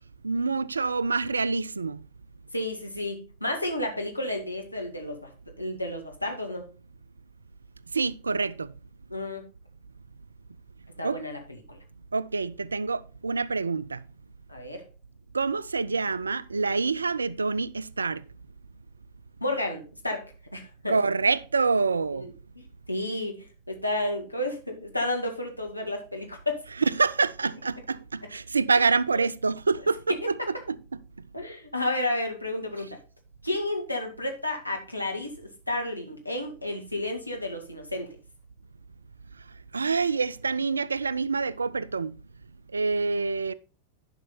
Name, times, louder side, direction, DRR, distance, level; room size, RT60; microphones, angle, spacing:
voice 1, 0.2-2.0 7.9-8.7 11.0-11.2 12.1-14.0 15.3-18.2 20.9-22.3 26.8-31.0 39.7-42.2 42.7-43.5, right 4 dB, 75° right, 0.4 m, -26 dB
voice 2, 2.5-5.3 5.6-6.7 9.1-9.5 11.0-11.4 11.7-11.8 14.5-14.8 19.4-21.0 22.1-22.3 22.9-26.6 29.1-29.2 30.1-30.2 31.3-33.0 33.4-38.2, left 1 dB, 90° left, 1.8 m, -31 dB
10.5 x 5.7 x 4.1 m
figure-of-eight pair, 90°, 0 cm